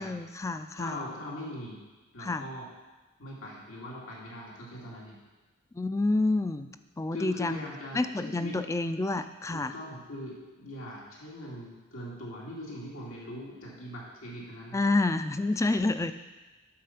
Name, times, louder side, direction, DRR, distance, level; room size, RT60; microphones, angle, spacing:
voice 1, 0.0-1.0 2.2-2.4 5.7-6.7 7.0-7.6 7.9-9.7 14.7-16.1, left 2 dB, 15° left, 10 dB, 0.3 m, -28 dB
voice 2, 0.8-1.8 2.1-2.7 3.2-5.2 7.1-8.6 9.5-14.8, left 1 dB, 90° left, -5 dB, 2.5 m, -41 dB
8.6 x 6.7 x 5.8 m, 1.2 s
head